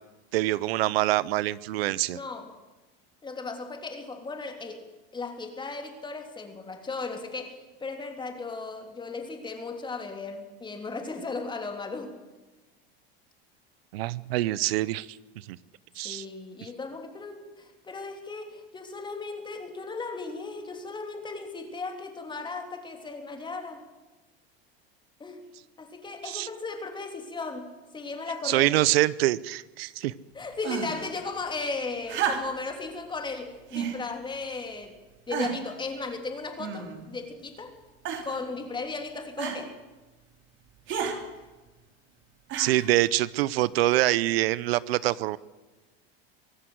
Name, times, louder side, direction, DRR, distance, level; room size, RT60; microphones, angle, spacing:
voice 1, 0.3-2.2 13.9-15.1 15.5-15.6 16.0-16.3 26.2-26.5 28.4-30.1 42.6-45.4, right 16 dB, 80° right, 19 dB, 0.9 m, -25 dB
voice 2, 2.1-2.5 3.2-4.8 5.1-12.2 16.0-23.8 25.2-25.4 25.8-28.7 30.3-34.9 35.3-37.7 38.2-39.8 40.9-41.3, left 3 dB, 15° left, 5 dB, 3.5 m, -36 dB
sound 1, 30.6-31.1 32.1-32.7 33.7-34.0 34.7-34.8 35.3-35.7 36.6-37.1 38.0-38.4 39.4-39.6 40.9-41.2 42.5-42.9 44.0-44.1, right 7 dB, 40° right, 3.5 m, -31 dB
24.5 x 16.5 x 8.0 m, 1.2 s
supercardioid pair, 135°, 30 cm